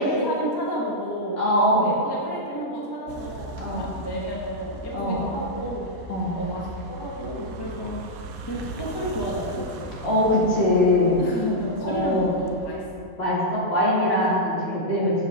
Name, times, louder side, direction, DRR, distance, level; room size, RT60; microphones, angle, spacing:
voice 1, 0.0-1.4 1.7-5.9 6.4-6.6 6.9-8.0 8.5-9.9 11.2-13.0 14.2-14.4, equal, 20° left, -3 dB, 0.7 m, -31 dB
voice 2, 1.4-1.9 3.6-3.9 4.9-5.2 6.1-6.3 10.0-11.2 11.8-12.3 13.2-15.2, left 1 dB, 45° left, -7 dB, 2.3 m, -22 dB
sound 1, 3.1-12.9, right 3 dB, 75° right, 1.1 m, -39 dB
12.0 x 5.5 x 3.5 m, 2.5 s
omnidirectional pair, 1.6 m